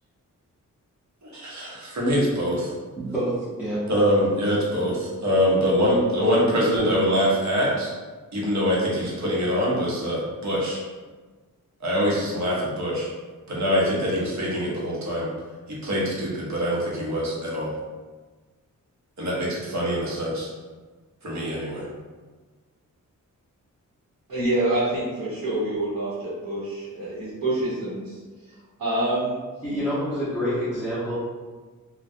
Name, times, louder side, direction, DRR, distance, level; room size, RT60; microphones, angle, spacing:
voice 1, 1.2-2.7 3.9-7.9 8.3-10.8 11.8-13.1 13.5-15.3 15.7-17.7 19.2-20.5 21.2-21.9, equal, 55° right, -5 dB, 0.8 m, -24 dB
voice 2, 3.0-3.8 29.6-31.2, equal, 5° right, -12 dB, 0.7 m, -27 dB
voice 3, 24.3-28.2 28.8-29.4, right 1 dB, 80° right, -10 dB, 0.9 m, -26 dB
2.2 x 2.1 x 2.6 m, 1.3 s
wide cardioid pair, 105°, 33 cm